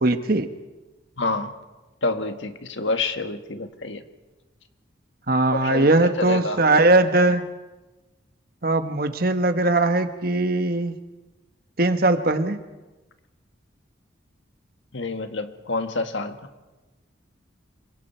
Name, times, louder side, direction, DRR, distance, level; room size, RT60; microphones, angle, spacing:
voice 1, 0.0-0.5 5.3-7.4 8.6-10.9 11.8-12.6, right 2 dB, 50° right, 8 dB, 1.3 m, -20 dB
voice 2, 1.2-1.5 2.0-4.0 5.5-6.6 14.9-16.4, left 3 dB, 75° left, 7 dB, 1.6 m, -28 dB
27.0 x 24.0 x 4.5 m, 1.1 s
head